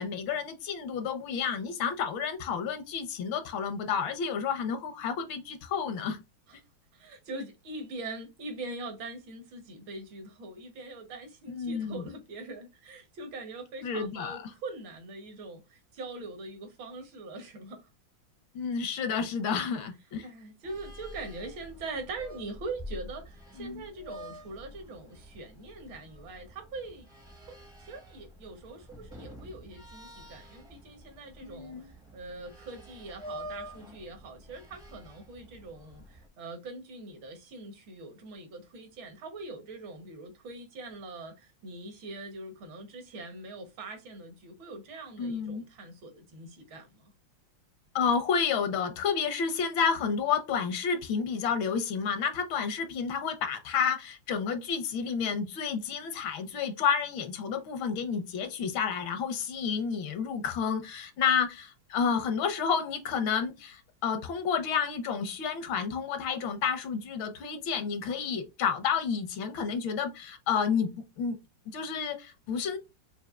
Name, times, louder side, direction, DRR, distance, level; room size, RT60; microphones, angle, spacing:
voice 1, 0.0-6.2 11.5-12.0 13.8-14.5 18.5-20.3 23.6-23.8 31.4-31.9 45.2-45.6 47.9-70.9 71.2-71.4 71.7-72.8, left 6 dB, 75° left, 1.6 m, -30 dB
voice 2, 6.9-17.9 20.2-27.1 27.5-47.1, right 2 dB, 70° right, 1.8 m, -43 dB
sound 1, 20.6-36.3, equal, 5° right, 0.4 m, -47 dB
5.5 x 2.6 x 2.4 m
omnidirectional pair, 2.2 m